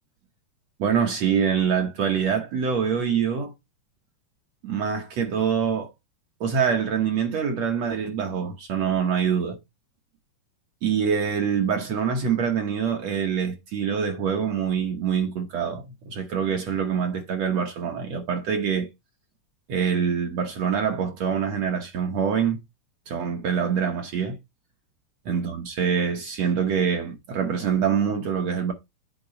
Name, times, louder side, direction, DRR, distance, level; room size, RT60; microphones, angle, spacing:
voice 1, 0.8-3.5 4.6-5.9 6.4-9.6 10.8-18.9 19.7-22.6 23.1-24.4 25.3-28.7, right 7 dB, 65° right, 1.8 m, -25 dB
8.8 x 3.7 x 5.1 m
omnidirectional pair, 3.7 m